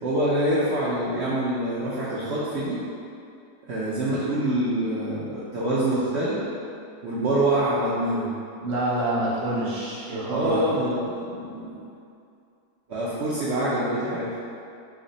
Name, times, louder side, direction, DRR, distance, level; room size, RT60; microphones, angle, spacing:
voice 1, 0.0-2.8 3.6-6.4 7.0-8.3 10.3-11.8 12.9-14.3, right 1 dB, 80° right, -9 dB, 0.6 m, -25 dB
voice 2, 8.6-10.6, right 1 dB, 50° right, -8 dB, 0.9 m, -27 dB
3.2 x 2.1 x 3.8 m, 2.5 s
omnidirectional pair, 1.7 m